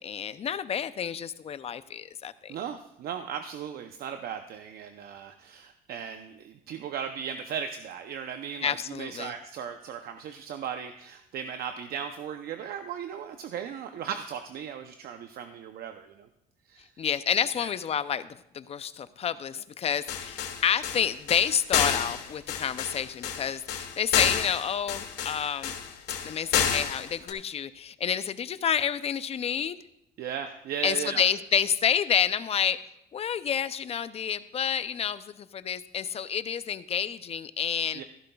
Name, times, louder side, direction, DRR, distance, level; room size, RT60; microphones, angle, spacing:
voice 1, 0.0-2.6 8.6-9.3 17.0-18.3 18.5-25.7 26.2-29.8 30.8-32.8 33.1-38.0, left 8 dB, 40° left, 14 dB, 0.5 m, -29 dB
voice 2, 2.5-16.3 16.7-16.9 17.6-17.7 30.2-31.3 37.9-38.0, right 8 dB, 65° right, 7 dB, 0.7 m, -37 dB
sound 1, 20.1-27.3, left 8 dB, 90° left, 1.3 m, -29 dB
15.0 x 11.5 x 2.3 m, 0.81 s
cardioid pair, 110°, 17 cm